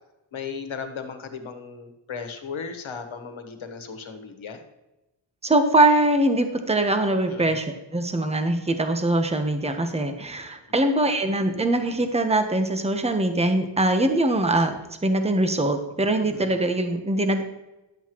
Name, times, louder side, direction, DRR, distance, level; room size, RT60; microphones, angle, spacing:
voice 1, 0.3-4.6 7.3-7.6 16.2-16.5, left 5 dB, 85° left, 7 dB, 1.5 m, -36 dB
voice 2, 5.4-14.8 15.0-17.4, right 1 dB, 15° right, 6 dB, 1.1 m, -22 dB
11.5 x 7.9 x 3.1 m, 0.99 s
wide cardioid pair, 80°, 46 cm